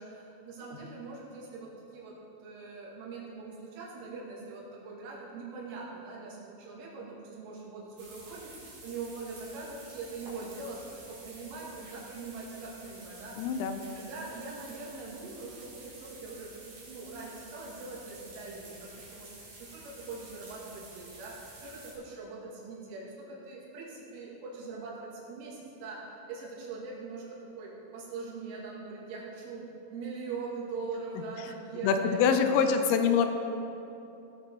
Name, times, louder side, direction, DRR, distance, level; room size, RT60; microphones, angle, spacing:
voice 1, 0.0-13.4 13.9-32.5 32.9-33.3, right 4 dB, 75° right, -4 dB, 4.4 m, -42 dB
sound 1, 8.0-21.9, right 2 dB, 45° right, 3.1 m, -50 dB
voice 2, 13.4-13.8 31.2-31.5 31.8-33.3, left 6 dB, 85° left, 7 dB, 3.3 m, -25 dB
17.5 x 6.8 x 4.5 m, 2.8 s
omnidirectional pair, 5.7 m